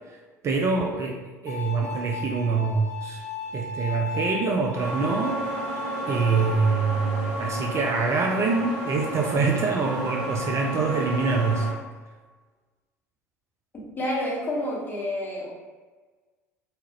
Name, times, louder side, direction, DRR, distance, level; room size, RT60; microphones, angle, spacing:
voice 1, 0.4-3.2 3.5-5.7 6.1-11.7, right 4 dB, 35° right, 1 dB, 0.3 m, -25 dB
Bowed string instrument, 1.5-6.5, left 5 dB, 65° left, 0.8 m, -37 dB
sound 1, 4.7-11.7, right 1 dB, 55° right, 1.2 m, -32 dB
voice 2, 14.0-15.5, left 1 dB, 20° left, -4 dB, 1.1 m, -29 dB
2.8 x 2.4 x 2.8 m, 1.4 s
figure-of-eight pair, 65°, 9 cm